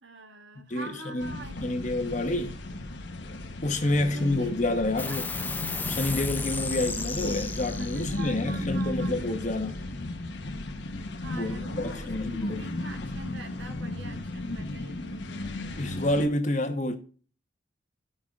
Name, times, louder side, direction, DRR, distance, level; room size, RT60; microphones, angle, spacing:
voice 1, 0.0-1.5 3.8-4.7 5.0-5.2 7.8-9.3 11.2-15.7, right 2 dB, 70° right, 1.5 m, -45 dB
voice 2, 0.7-2.6 3.6-5.3 5.9-9.8 11.3-12.6 15.8-17.0, left 2 dB, 40° left, 1.0 m, -28 dB
sound 1, 1.2-16.3, left 2 dB, 65° left, 1.0 m, -35 dB
sound 2, 5.0-11.9, left 3 dB, 10° left, 0.4 m, -36 dB
13.5 x 5.5 x 2.4 m
head